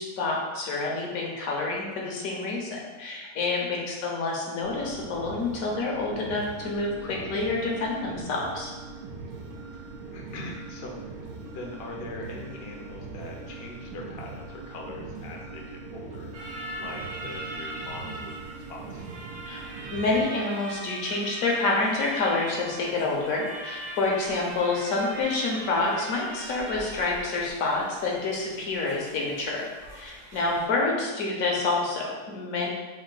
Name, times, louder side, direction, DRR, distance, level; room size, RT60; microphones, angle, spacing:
voice 1, 0.0-8.7 19.5-29.7 29.9-32.7, left 3 dB, 70° left, -2 dB, 1.2 m, -28 dB
sound 1, 4.6-20.2, right 3 dB, 90° right, 1.1 m, -41 dB
voice 2, 9.2-9.6 9.8-11.3 11.5-16.3 16.8-19.1 24.1-24.2, left 2 dB, 55° left, -1 dB, 0.7 m, -42 dB
sound 2, 16.3-30.7, right 1 dB, 40° right, 0.7 m, -41 dB
3.6 x 2.6 x 3.8 m, 1.3 s
omnidirectional pair, 1.5 m